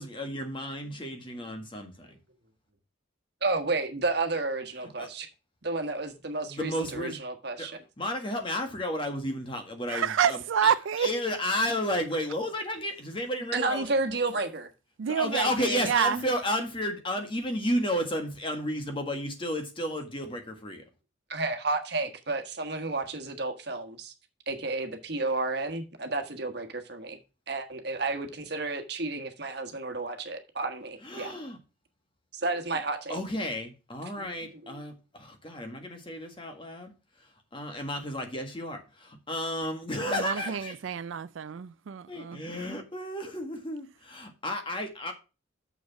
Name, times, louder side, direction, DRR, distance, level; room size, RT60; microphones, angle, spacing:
voice 1, 0.0-2.1 5.0-5.1 6.5-7.2 7.6-7.7 8.0-10.7 11.0-13.9 15.2-20.8 31.0-31.6 33.1-36.9 37.5-40.7 42.1-45.1, equal, 25° left, 1.6 m, -32 dB
voice 2, 3.4-5.3 5.6-7.8 13.5-14.7 21.3-24.1 24.5-27.2 27.5-31.3 32.3-33.2 34.2-34.8, right 3 dB, 55° right, 1.4 m, -31 dB
voice 3, 9.9-11.1 15.0-16.2 40.0-42.4, right 7 dB, 75° right, 0.4 m, -28 dB
6.7 x 6.3 x 5.8 m
head